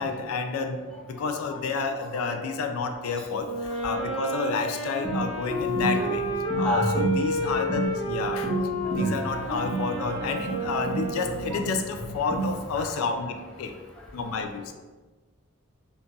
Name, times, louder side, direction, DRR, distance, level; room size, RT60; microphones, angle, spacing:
voice 1, 0.0-0.8 1.1-3.5 3.8-6.2 6.6-8.5 8.9-13.7 14.1-14.6, left 4 dB, 80° left, 6 dB, 0.3 m, -30 dB
voice 2, 0.9-1.6 2.0-2.4 3.0-3.3 4.0-4.1 5.7-6.1 6.5-7.0 8.6-9.7 10.1-10.6 11.5-11.6 12.7-13.0 14.0-14.1, equal, 5° left, -4 dB, 0.4 m, -35 dB
Wind instrument woodwind instrument, 3.4-11.8, equal, 65° left, 0.8 m, -30 dB
sound 1, 5.0-12.8, right 3 dB, 15° right, 1.0 m, -32 dB
2.6 x 2.3 x 3.7 m, 1.3 s
head